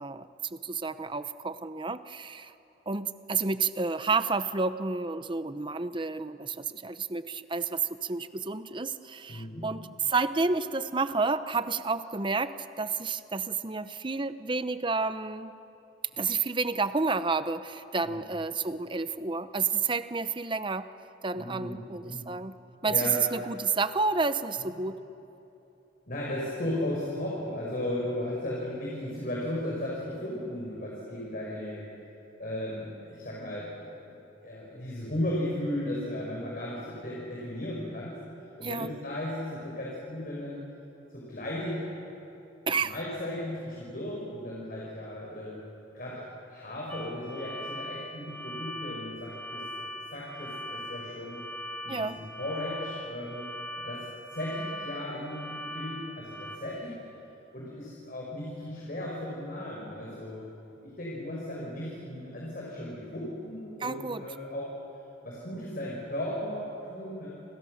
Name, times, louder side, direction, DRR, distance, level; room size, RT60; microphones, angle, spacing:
voice 1, 0.0-2.5 2.9-15.5 16.2-20.9 21.2-22.5 22.8-25.0 38.6-38.9 42.7-42.9 51.9-52.2 63.8-64.2, right 4 dB, 25° right, 11 dB, 0.8 m, -30 dB
voice 2, 9.3-9.7 18.1-18.2 21.3-22.3 22.8-23.2 26.1-31.8 32.4-34.2 34.4-38.2 38.6-40.6 41.1-41.8 42.8-45.6 45.9-46.2 46.5-49.6 50.1-51.4 51.8-53.5 53.8-54.1 54.3-57.0 57.5-60.5 60.8-64.7 65.2-67.3, left 1 dB, 50° left, -4 dB, 5.8 m, -35 dB
sound 1, 46.9-56.6, equal, 10° left, 3.1 m, -40 dB
29.5 x 28.0 x 6.7 m, 2.9 s
head